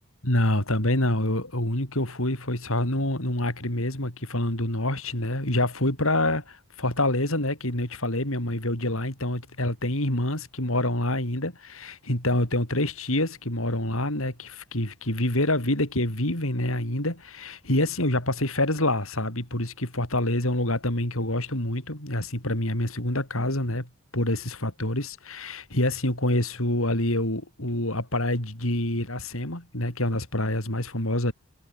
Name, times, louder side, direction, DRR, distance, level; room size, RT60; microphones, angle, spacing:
voice 1, 0.2-31.3, left 1 dB, 70° left, 6.1 m, -26 dB
head